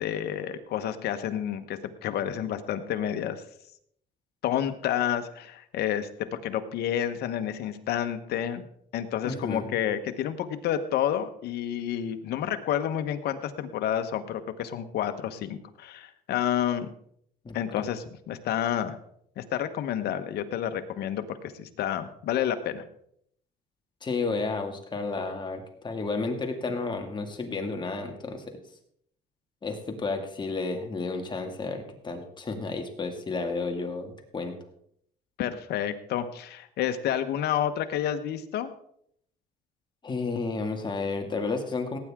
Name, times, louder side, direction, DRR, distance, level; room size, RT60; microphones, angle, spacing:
voice 1, 0.0-3.4 4.4-8.7 8.9-16.9 17.5-19.0 19.4-22.8 35.4-38.7, left 10 dB, 70° left, 8 dB, 1.3 m, -30 dB
voice 2, 9.2-9.7 17.4-17.6 24.0-28.4 29.6-34.6 40.0-42.0, left 3 dB, 25° left, 3 dB, 2.3 m, -32 dB
17.5 x 9.6 x 3.7 m, 0.69 s
cardioid pair, 110°, 17 cm